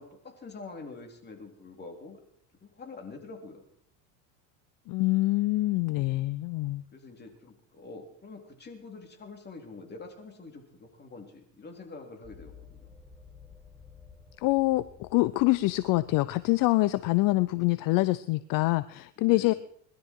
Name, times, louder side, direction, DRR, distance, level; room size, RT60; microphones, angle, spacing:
voice 1, 0.0-2.2 2.6-3.6 6.9-12.9 19.2-19.6, left 3 dB, 25° left, 3 dB, 3.6 m, -46 dB
voice 2, 4.9-6.8 14.4-19.5, left 20 dB, 55° left, 16 dB, 0.7 m, -25 dB
sound 1, 12.2-17.7, left 5 dB, 5° left, 1.6 m, -54 dB
21.5 x 12.0 x 4.7 m, 0.66 s
supercardioid pair, 120°, 39 cm